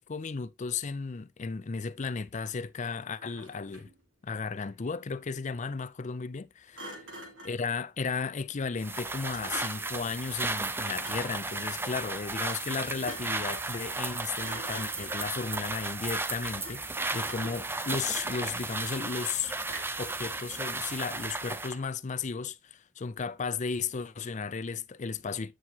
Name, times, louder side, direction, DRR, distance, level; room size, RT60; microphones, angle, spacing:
voice 1, 0.0-3.9 4.2-6.9 7.4-19.5 20.0-25.5, left 5 dB, 40° left, 0.5 m, -34 dB
Thump thud, 3.2-4.0 6.7-7.6 9.3-10.0 10.9-11.4 12.8-13.5 13.9-14.1 14.4-15.4 16.6-17.0 17.3-18.7 19.6-20.1, right 1 dB, 80° right, 3.2 m, -46 dB
sound 1, 8.8-21.8, right 3 dB, 10° right, 0.5 m, -34 dB
9.3 x 6.2 x 2.9 m
head